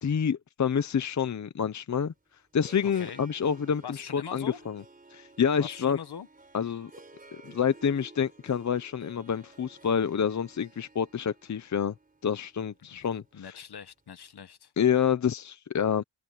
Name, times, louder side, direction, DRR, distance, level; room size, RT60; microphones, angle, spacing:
voice 1, 0.0-2.1 2.5-4.8 5.1-6.0 6.5-6.9 7.3-11.9 12.2-13.5 14.8-16.0, left 7 dB, 40° left, 0.8 m, -28 dB
Harp, 1.9-14.1, right 3 dB, 20° right, 4.0 m, -54 dB
voice 2, 2.8-3.2 3.8-4.6 5.6-6.3 12.9-14.7, left 8 dB, 65° left, 1.6 m, -42 dB
wide cardioid pair, 160°, 42 cm